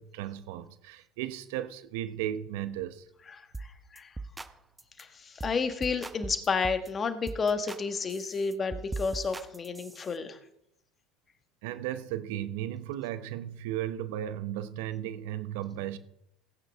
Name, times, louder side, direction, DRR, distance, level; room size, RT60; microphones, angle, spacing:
voice 1, 0.0-3.1 11.6-16.0, right 12 dB, 70° right, 0.9 m, -35 dB
sound 1, 3.5-3.7 4.0-4.5 4.8-5.0 5.4-5.6 5.8-6.9 7.3-7.8 8.1-10.1, right 3 dB, 10° right, 0.8 m, -40 dB
voice 2, 5.0-10.4, left 5 dB, 30° left, 1.5 m, -31 dB
18.0 x 9.1 x 3.5 m
hypercardioid pair, 80°, 0 cm